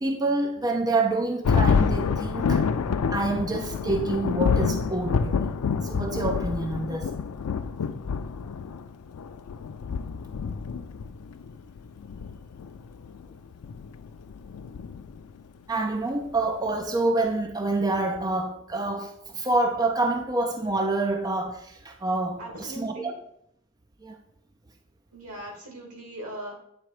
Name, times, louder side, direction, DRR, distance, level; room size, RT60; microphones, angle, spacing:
voice 1, 0.0-2.6 3.1-5.5 5.8-7.1 15.7-23.1 24.0-24.2, right 2 dB, 15° right, 0.4 m, -27 dB
Thunder, 1.4-15.4, left 5 dB, 85° left, 0.4 m, -28 dB
voice 2, 22.4-23.1 25.1-26.6, right 1 dB, 85° right, 2.2 m, -39 dB
9.0 x 3.5 x 4.8 m
head